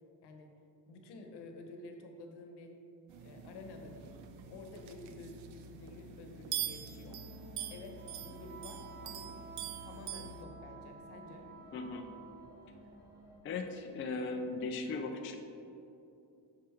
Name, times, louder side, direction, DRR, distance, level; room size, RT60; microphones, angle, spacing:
voice 1, 0.2-0.6 0.9-2.7 3.2-4.2 4.5-7.1 7.7-9.3 9.8-11.5, left 2 dB, 75° left, 4 dB, 1.0 m, -50 dB
sound 1, 3.1-10.4, right 9 dB, 90° right, 0.7 m, -44 dB
Wind instrument woodwind instrument, 6.6-12.8, right 4 dB, 25° right, 0.8 m, -53 dB
sound 2, 7.1-13.4, equal, 10° right, 1.6 m, -58 dB
voice 2, 11.7-12.1 13.4-15.4, left 3 dB, 30° left, 4 dB, 0.4 m, -38 dB
6.4 x 5.7 x 4.4 m, 2.7 s
cardioid pair, 160°, 40 cm